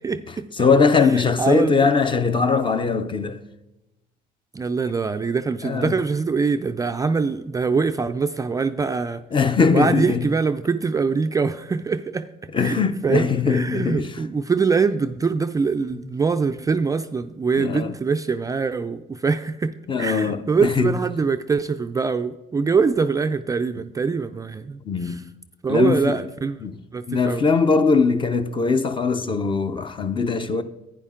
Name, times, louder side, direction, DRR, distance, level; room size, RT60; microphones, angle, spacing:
voice 1, 0.0-0.5 1.4-1.9 4.5-9.2 9.7-12.3 12.6-12.8 13.0-25.2 25.6-26.6 26.9-27.4, right 5 dB, 20° right, 0.4 m, -23 dB
voice 2, 0.6-3.4 5.6-6.0 9.3-10.3 12.5-14.2 15.9-16.0 17.6-17.9 19.9-21.0 24.8-25.2 25.7-26.2 26.6-26.8 27.1-30.6, left 4 dB, 30° left, 0.7 m, -21 dB
11.0 x 9.3 x 3.7 m
cardioid pair, 110°, 17 cm